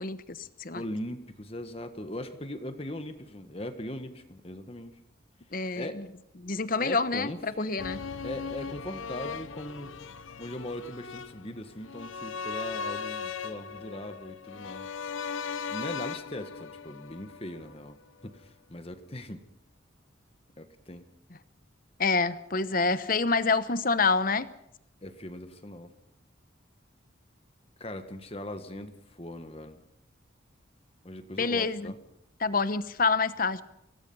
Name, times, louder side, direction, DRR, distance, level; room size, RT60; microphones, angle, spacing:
voice 1, 0.0-0.8 5.5-6.1 6.4-8.0 22.0-24.5 31.4-31.9 32.4-33.6, left 4 dB, 45° left, 13 dB, 1.0 m, -27 dB
voice 2, 0.7-5.0 5.7-6.0 6.8-7.8 8.2-10.0 10.4-15.0 15.7-18.0 18.2-19.4 20.6-21.1 25.0-25.9 27.8-29.8 31.0-32.0, left 1 dB, 30° left, 8 dB, 1.5 m, -40 dB
sound 1, 7.8-17.9 18.2-18.3, left 5 dB, 85° left, 0.9 m, -38 dB
25.0 x 18.5 x 5.6 m, 0.79 s
head